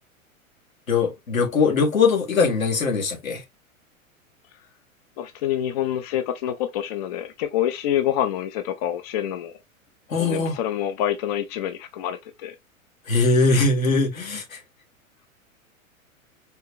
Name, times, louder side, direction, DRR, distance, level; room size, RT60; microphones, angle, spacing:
voice 1, 0.9-3.4 10.1-10.6 13.1-14.6, left 4 dB, 70° left, 2.0 m, -21 dB
voice 2, 5.2-9.5 10.2-12.6, left 11 dB, 30° left, 0.5 m, -27 dB
4.4 x 3.6 x 3.1 m
figure-of-eight pair, 100°, 42 cm